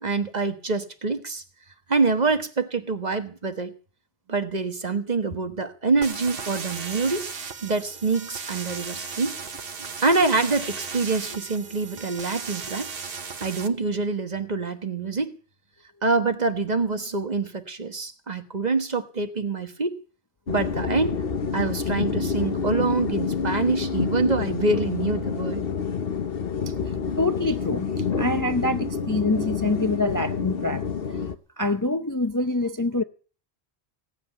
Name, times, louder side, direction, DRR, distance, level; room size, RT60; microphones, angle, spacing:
voice 1, 0.0-1.4 1.9-3.7 4.3-7.3 7.6-9.3 10.0-12.9 13.4-15.4 16.0-20.0 20.5-21.2 21.5-25.6, right 3 dB, 40° right, 1.4 m, -25 dB
sound 1, 6.0-13.7, right 5 dB, 60° right, 1.3 m, -36 dB
sound 2, 20.5-31.4, left 6 dB, 60° left, 1.2 m, -28 dB
voice 2, 27.2-30.8 31.6-33.0, left 2 dB, 20° left, 0.6 m, -25 dB
17.0 x 7.7 x 9.9 m
omnidirectional pair, 1.1 m